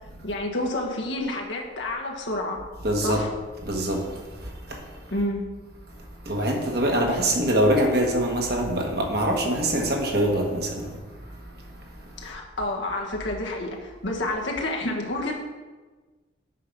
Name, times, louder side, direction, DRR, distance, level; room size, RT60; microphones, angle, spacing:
voice 1, 0.2-2.6 2.9-3.3 5.1-5.4 12.2-15.3, left 1 dB, 70° left, 0 dB, 1.4 m, -29 dB
voice 2, 2.8-3.2 3.6-4.1 4.4-4.8 6.2-11.0, right 1 dB, 55° right, 0 dB, 1.5 m, -24 dB
8.3 x 5.7 x 5.3 m, 1.3 s
head